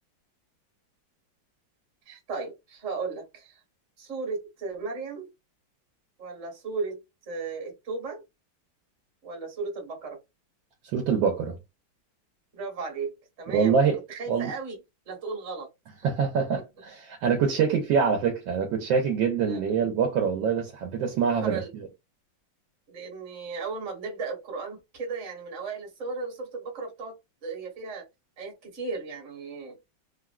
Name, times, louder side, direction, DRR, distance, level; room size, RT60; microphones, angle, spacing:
voice 1, 2.1-3.6 4.0-5.3 6.2-8.2 9.2-10.2 12.5-13.8 14.1-14.8 15.1-15.7 19.4-19.6 21.0-21.7 22.9-28.0 28.4-29.8, right 4 dB, 45° right, 1.4 m, -35 dB
voice 2, 10.9-11.6 13.5-14.0 14.3-14.5 16.0-21.9, right 6 dB, 85° right, 1.5 m, -25 dB
3.5 x 2.4 x 2.2 m
omnidirectional pair, 2.0 m